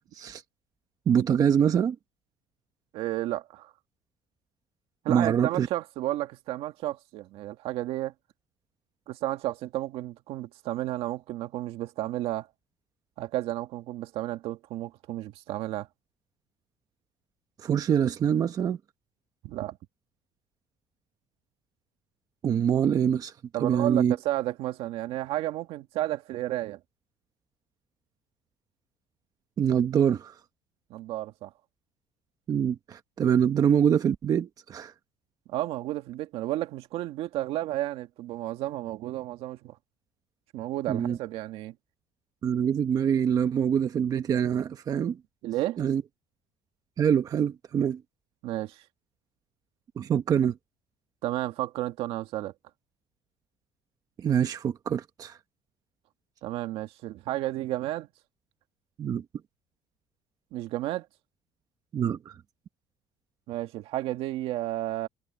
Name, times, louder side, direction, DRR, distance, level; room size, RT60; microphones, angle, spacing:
voice 1, 1.1-2.0 5.1-5.7 17.6-18.8 22.4-23.3 23.6-24.2 29.6-30.3 32.5-34.9 40.9-41.2 42.4-45.2 45.8-46.0 47.0-48.0 50.0-50.6 54.2-55.4 59.0-59.2 61.9-62.3, right 8 dB, 35° right, 1.2 m, -25 dB
voice 2, 2.9-3.7 5.0-8.1 9.1-12.5 13.2-15.9 19.4-19.8 23.5-26.8 30.9-31.5 35.5-39.8 40.5-41.7 45.4-45.8 48.4-48.8 51.2-52.5 56.4-58.1 60.5-61.1 63.5-65.1, right 15 dB, 70° right, 1.9 m, -32 dB
cardioid pair, 140°, 10 cm